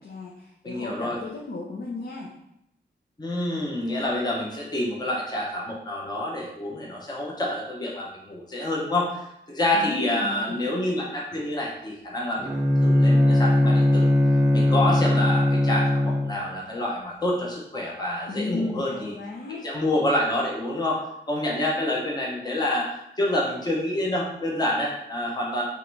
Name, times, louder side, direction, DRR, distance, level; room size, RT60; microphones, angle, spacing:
voice 1, 0.0-2.3 9.7-10.6 18.3-19.6 21.7-21.8, left 3 dB, 55° left, -2 dB, 0.7 m, -34 dB
voice 2, 0.6-1.2 3.2-12.5 12.8-14.1 14.5-19.1 19.6-25.6, left 1 dB, 25° left, -3 dB, 0.8 m, -27 dB
Bowed string instrument, 12.4-16.5, left 1 dB, 20° right, 0.6 m, -20 dB
3.7 x 3.0 x 4.5 m, 0.80 s
wide cardioid pair, 140°, 18 cm